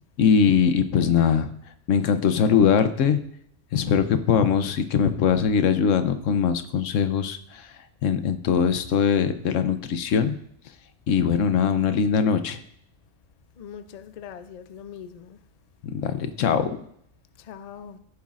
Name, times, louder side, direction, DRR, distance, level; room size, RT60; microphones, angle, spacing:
voice 1, 0.2-1.5 1.9-3.2 3.7-7.7 8.0-10.4 11.1-12.6 15.8-16.9, left 7 dB, 85° left, 1.1 m, -21 dB
voice 2, 13.6-15.4 17.4-18.0, left 8 dB, 55° left, 0.4 m, -41 dB
14.0 x 7.2 x 2.5 m
omnidirectional pair, 1.3 m